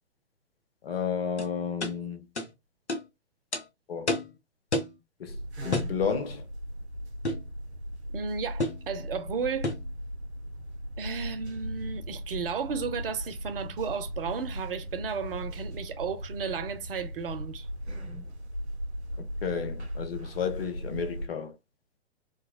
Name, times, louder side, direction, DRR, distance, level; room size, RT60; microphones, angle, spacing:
voice 1, 0.8-2.2 3.9-4.1 5.2-5.4 5.6-6.4 19.2-21.5, left 6 dB, 60° left, 1.1 m, -32 dB
sound 1, 1.4-1.5 1.8-2.0 2.4-2.5 2.9-3.0 3.5-3.6 4.1-4.3 4.7-5.0 5.7-6.0 7.2-7.5 8.6-8.8 9.6-9.9, left 2 dB, 75° left, 1.2 m, -30 dB
sound 2, 5.3-21.3, equal, 75° right, 1.0 m, -38 dB
voice 2, 8.1-9.7 11.0-17.7, right 6 dB, 55° right, 0.8 m, -34 dB
3.9 x 2.3 x 2.3 m
figure-of-eight pair, 115°, 33 cm